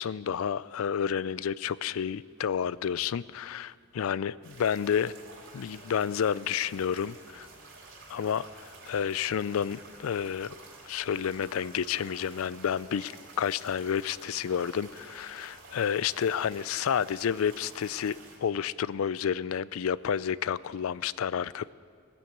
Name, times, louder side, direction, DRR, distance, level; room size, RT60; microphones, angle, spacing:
voice 1, 0.0-5.1 5.5-7.5 8.1-10.5 10.9-21.7, left 8 dB, 90° left, 19 dB, 0.4 m, -30 dB
sound 1, 4.4-18.4, right 3 dB, 70° right, 3.5 m, -50 dB
16.5 x 10.5 x 7.9 m, 2.1 s
head